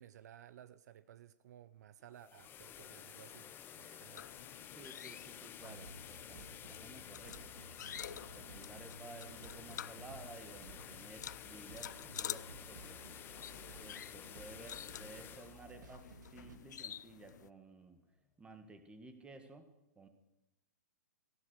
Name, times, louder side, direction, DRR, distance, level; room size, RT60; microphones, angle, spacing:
voice 1, 0.0-4.3, right 11 dB, 65° right, 16 dB, 0.7 m, -57 dB
sound 1, 2.0-16.9, left 9 dB, 20° left, 1.0 m, -52 dB
sound 2, 4.2-17.5, left 9 dB, 75° left, 0.5 m, -50 dB
voice 2, 4.7-7.4 8.1-13.1 13.8-18.0 18.4-19.7 20.0-20.1, right 3 dB, 10° right, 8 dB, 1.8 m, -55 dB
sound 3, 5.6-16.6, right 3 dB, 80° right, 2.6 m, -55 dB
15.5 x 12.0 x 6.4 m, 0.98 s
hypercardioid pair, 135°, 10 cm